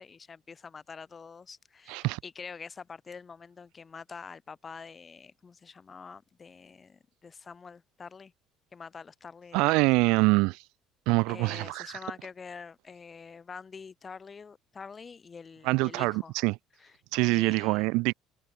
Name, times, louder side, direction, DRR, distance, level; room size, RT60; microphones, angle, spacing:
voice 1, 0.0-8.3 8.7-9.8 11.3-16.3 16.8-17.0 17.2-17.9, left 5 dB, 20° left, 1.2 m, -46 dB
voice 2, 1.9-2.2 9.5-10.6 11.1-11.9 15.6-16.6 17.1-18.1, right 25 dB, 80° right, 0.4 m, -25 dB
cardioid pair, 155°, 0 cm